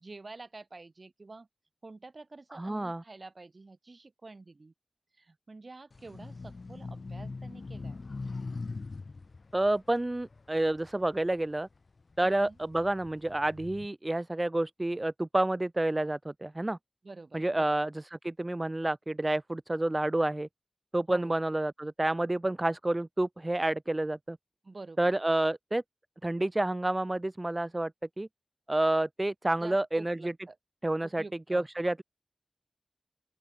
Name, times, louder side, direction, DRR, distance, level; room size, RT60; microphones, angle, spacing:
voice 1, 0.0-1.5 1.8-4.7 5.1-8.0 12.2-12.6 17.0-17.7 21.1-21.4 24.6-25.1 29.6-30.6 31.0-31.7, right 3 dB, 55° right, 2.4 m, -48 dB
voice 2, 2.5-3.0 9.5-11.7 12.2-16.8 17.3-20.5 20.9-24.4 25.0-25.8 26.2-27.9 28.2-28.3 28.7-30.3 30.8-31.2 31.5-32.0, right 1 dB, 30° right, 0.3 m, -29 dB
sound 1, 5.9-11.5 12.0-13.9, left 3 dB, 65° left, 0.6 m, -42 dB
open air
wide cardioid pair, 55°, 0 cm